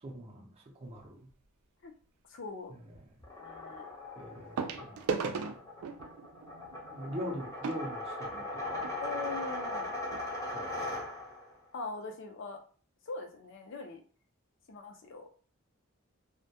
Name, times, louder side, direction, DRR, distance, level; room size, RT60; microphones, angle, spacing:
voice 1, 0.0-1.3 4.2-5.5 6.9-8.9 10.5-11.0, equal, 30° right, -1 dB, 0.5 m, -43 dB
sound 1, 1.0-1.3 2.9-3.0 4.6-9.0 9.7-9.8 10.0-10.2 10.8-10.9, right 5 dB, 85° right, 0.4 m, -38 dB
voice 2, 2.3-2.7 3.4-3.8 7.2-7.4 9.0-9.9 11.7-12.6 13.1-14.0 14.7-15.3, left 3 dB, 60° left, 4 dB, 0.5 m, -41 dB
sound 2, 3.2-11.5, left 1 dB, 15° left, 0.6 m, -39 dB
2.1 x 2.1 x 2.7 m, 0.40 s
head